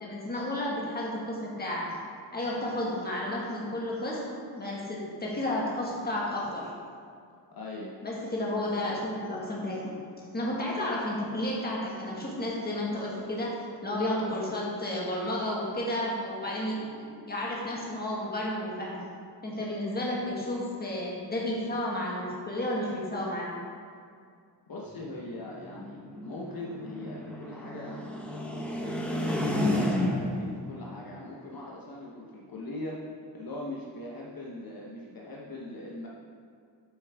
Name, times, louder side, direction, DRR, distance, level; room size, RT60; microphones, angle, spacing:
voice 1, 0.0-1.9 2.3-6.7 8.0-9.9 10.3-19.0 19.4-23.5, left 1 dB, 20° left, -4 dB, 1.6 m, -32 dB
voice 2, 7.5-7.9 24.7-28.2 28.9-33.0 33.3-36.1, left 1 dB, 55° left, -3 dB, 1.0 m, -41 dB
sound 1, 25.0-30.5, left 1 dB, 5° left, 0.8 m, -31 dB
9.1 x 6.9 x 3.5 m, 2.3 s
wide cardioid pair, 160°, 42 cm